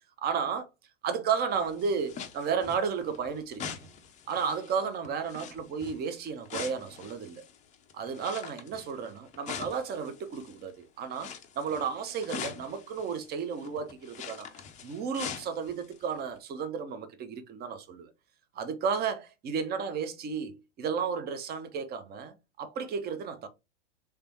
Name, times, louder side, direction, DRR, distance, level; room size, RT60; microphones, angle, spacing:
voice 1, 0.2-0.6 1.0-3.9 4.3-7.4 7.9-11.3 11.6-14.5 14.8-18.1 18.5-23.5, right 6 dB, 25° right, 0.8 m, -33 dB
sound 1, 1.5-10.7 11.1-16.1 16.4-16.5, left 7 dB, 20° left, 0.6 m, -43 dB
3.4 x 3.4 x 2.8 m
figure-of-eight pair, 95°, 37 cm